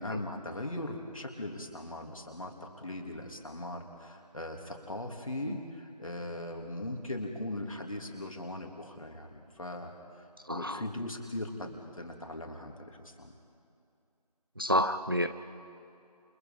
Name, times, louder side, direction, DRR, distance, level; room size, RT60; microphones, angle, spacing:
voice 1, 0.0-10.2 10.5-13.3, left 1 dB, 55° left, 2 dB, 3.3 m, -39 dB
voice 2, 10.5-10.8 14.6-15.3, equal, 35° right, 9 dB, 0.7 m, -28 dB
28.5 x 26.0 x 5.4 m, 2.5 s
figure-of-eight pair, 170°, 21 cm